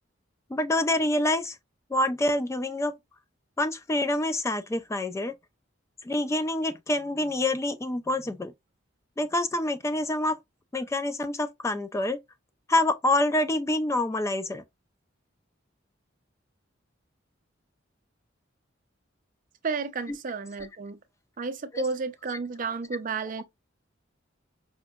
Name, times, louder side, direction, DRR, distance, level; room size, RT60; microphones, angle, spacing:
voice 1, 0.5-1.6 1.9-2.9 3.6-5.3 6.1-8.5 9.2-10.4 10.7-12.2 12.7-14.6 21.7-21.8, left 1 dB, 15° left, 0.3 m, -26 dB
voice 2, 19.6-21.0 21.4-23.4, right 4 dB, 45° right, 0.5 m, -32 dB
5.0 x 2.6 x 2.3 m
head